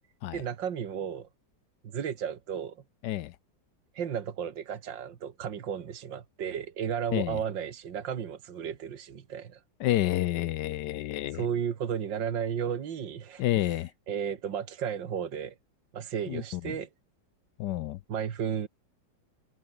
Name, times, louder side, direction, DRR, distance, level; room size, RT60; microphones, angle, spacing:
voice 1, 0.3-1.3 1.8-2.8 3.9-9.6 11.3-13.6 14.1-15.5 15.9-16.9 18.1-18.7, right 8 dB, 80° right, 2.3 m, -33 dB
voice 2, 9.8-11.5 13.4-13.9 16.3-16.7 17.6-18.0, left 14 dB, 75° left, 1.2 m, -29 dB
omnidirectional pair, 2.0 m